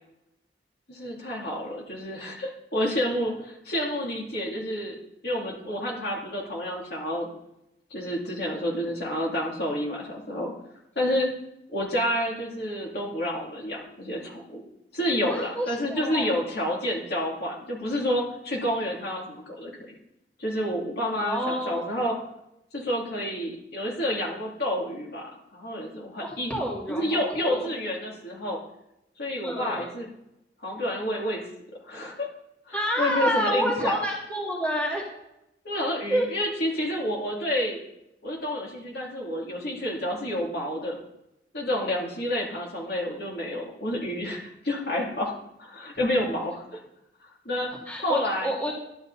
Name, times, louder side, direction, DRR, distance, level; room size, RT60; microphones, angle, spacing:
voice 1, 0.9-5.0 5.2-7.3 7.9-10.5 10.9-11.3 11.7-14.6 14.9-19.8 20.4-22.2 22.7-26.6 26.9-28.6 29.2-30.1 30.6-31.5 31.8-32.3 32.7-34.0 35.6-37.8 38.2-41.0 41.5-44.4 44.6-46.8 47.2-47.7 48.0-48.5, left 1 dB, 60° left, -2 dB, 3.1 m, -29 dB
voice 2, 15.3-16.3 21.2-21.8 26.2-27.7 29.4-29.9 32.7-35.1 36.1-36.3 47.9-48.7, right 1 dB, 10° left, -4 dB, 2.4 m, -29 dB
12.0 x 11.0 x 4.1 m, 0.85 s
head